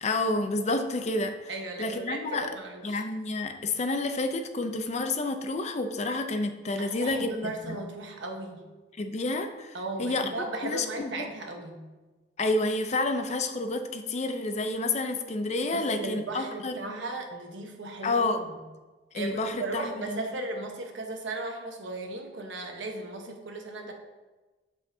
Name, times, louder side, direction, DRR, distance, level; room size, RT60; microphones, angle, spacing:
voice 1, 0.0-1.5 1.8-2.5 2.8-7.8 9.0-10.3 10.6-11.3 12.4-17.0 18.0-18.4 19.1-20.2, left 2 dB, 40° left, 7 dB, 0.5 m, -29 dB
voice 2, 1.5-3.0 6.8-8.6 9.7-11.8 15.7-18.6 19.1-23.9, right 2 dB, 90° right, 3 dB, 1.1 m, -36 dB
7.6 x 6.3 x 2.7 m, 1.2 s
head